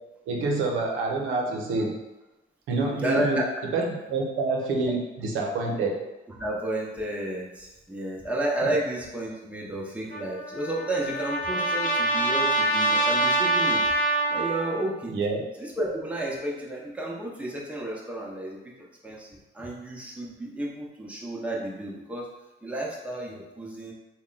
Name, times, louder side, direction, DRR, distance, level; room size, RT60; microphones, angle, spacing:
voice 1, 0.3-2.0 2.7-3.4 3.7-6.0 15.1-15.4, right 3 dB, 80° right, 0 dB, 0.7 m, -27 dB
voice 2, 3.0-3.5 6.4-13.8 14.3-15.2 15.6-18.7 19.0-19.3 19.5-22.3 22.6-23.9, right 1 dB, 5° right, -4 dB, 0.8 m, -31 dB
Trumpet, 10.1-14.9, right 2 dB, 45° left, 0.6 m, -25 dB
3.5 x 2.2 x 3.8 m, 1.0 s
cardioid pair, 90°, 20 cm